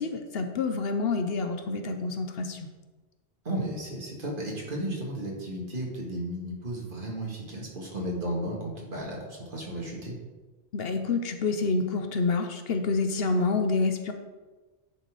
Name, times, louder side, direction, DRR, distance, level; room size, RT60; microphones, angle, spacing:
voice 1, 0.0-2.6 10.7-14.1, left 3 dB, 65° left, 6 dB, 0.9 m, -28 dB
voice 2, 3.5-10.1, right 1 dB, 50° right, -2 dB, 1.8 m, -34 dB
10.0 x 4.1 x 4.9 m, 1.2 s
omnidirectional pair, 1.1 m